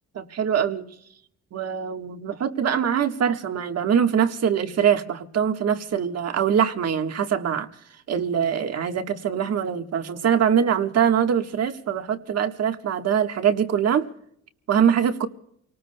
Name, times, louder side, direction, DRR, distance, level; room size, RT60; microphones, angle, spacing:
voice 1, 0.1-0.9 1.5-7.7 8.1-14.1 14.7-15.3, right 8 dB, 55° right, 1.4 m, -23 dB
29.0 x 19.0 x 2.2 m
cardioid pair, 90°, 30 cm